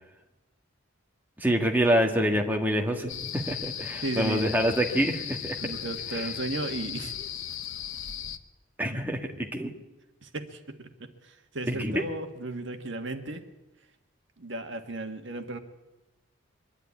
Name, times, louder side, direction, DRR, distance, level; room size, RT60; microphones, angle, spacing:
voice 1, 1.4-5.6 6.1-6.2 8.8-9.7 11.7-12.0, equal, 10° right, 2 dB, 1.6 m, -26 dB
sound 1, 3.1-8.4, left 9 dB, 70° left, 1.0 m, -36 dB
voice 2, 4.0-4.5 5.6-7.1 10.2-13.4 14.4-15.6, right 2 dB, 60° right, 6 dB, 1.6 m, -35 dB
23.5 x 11.5 x 9.7 m, 1.0 s
head